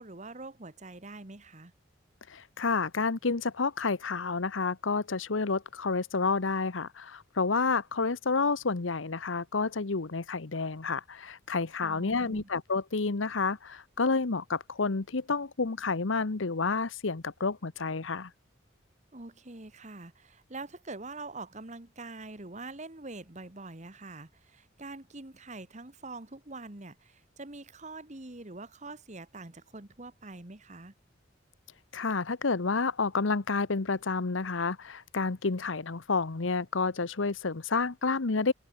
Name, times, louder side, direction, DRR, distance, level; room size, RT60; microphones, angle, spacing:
voice 1, 0.0-1.7 11.8-12.5 19.1-30.9, right 3 dB, 35° right, 1.7 m, -44 dB
voice 2, 2.3-18.3 31.9-38.5, left 4 dB, 80° left, 1.0 m, -30 dB
head